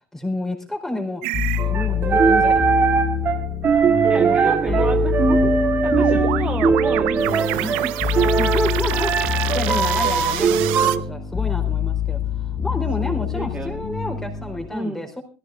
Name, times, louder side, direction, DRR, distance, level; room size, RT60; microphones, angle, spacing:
voice 1, 0.1-1.2 1.5-2.9 4.1-5.1 8.4-15.2, left 1 dB, 5° left, 4 dB, 4.4 m, -30 dB
sound 1, 1.2-1.7 5.4-11.0, right 17 dB, 90° right, 0.9 m, -28 dB
sound 2, 1.3-14.7, left 9 dB, 35° left, 3.5 m, -26 dB
sound 3, 1.6-11.0, right 5 dB, 35° right, 2.0 m, -20 dB
voice 2, 4.1-5.5 5.8-7.9 13.0-13.8 14.7-15.1, right 3 dB, 20° right, 4 dB, 1.6 m, -30 dB
17.5 x 15.0 x 3.9 m, 0.34 s
cardioid pair, 125°, 6 cm